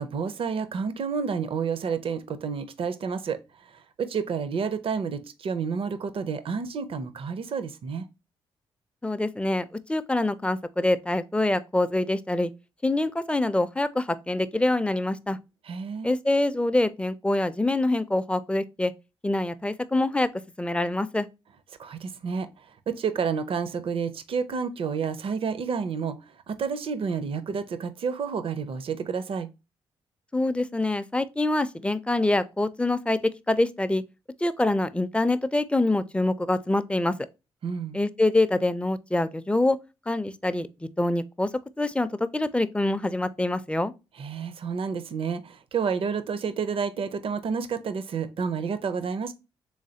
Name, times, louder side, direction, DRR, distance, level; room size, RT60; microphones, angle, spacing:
voice 1, 0.0-8.1 15.6-16.2 21.8-22.5 22.9-29.5 37.6-38.0 44.2-49.3, right 6 dB, 55° right, 0.5 m, -30 dB
voice 2, 9.0-12.5 12.8-15.4 16.0-18.9 19.2-20.3 20.6-21.3 30.3-34.0 34.4-37.1 37.9-39.8 40.1-41.5 41.8-43.9, left 2 dB, 10° left, 0.4 m, -25 dB
3.5 x 3.2 x 2.7 m
supercardioid pair, 55°, 11 cm